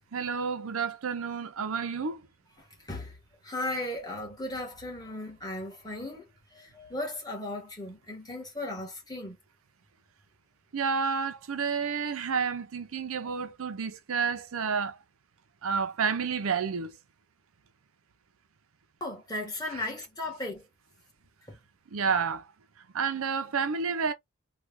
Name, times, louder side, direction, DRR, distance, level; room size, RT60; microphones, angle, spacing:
voice 1, 0.1-2.2 10.7-15.0 15.6-16.9 21.9-22.4 22.9-24.1, right 5 dB, 75° right, 0.6 m, -30 dB
voice 2, 2.6-3.2 3.4-6.3 6.5-9.4 13.2-13.3 19.0-20.7 21.5-21.6, left 1 dB, 15° left, 1.3 m, -36 dB
3.2 x 2.3 x 3.5 m
head